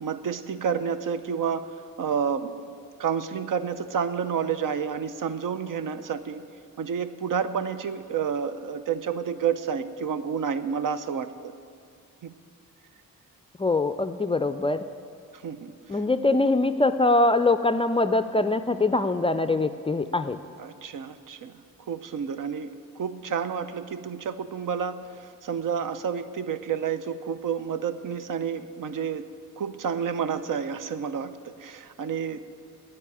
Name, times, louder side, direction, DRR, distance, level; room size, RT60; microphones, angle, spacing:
voice 1, 0.0-1.7 2.0-2.7 3.0-6.4 6.8-11.5 12.2-12.3 15.4-15.7 16.3-16.4 20.6-21.6 21.9-29.3 29.6-32.4, right 7 dB, 70° right, 12 dB, 0.7 m, -30 dB
voice 2, 13.6-14.8 15.9-20.4, left 2 dB, 15° left, 10 dB, 0.3 m, -23 dB
10.0 x 8.5 x 9.8 m, 2.4 s
wide cardioid pair, 110°, 34 cm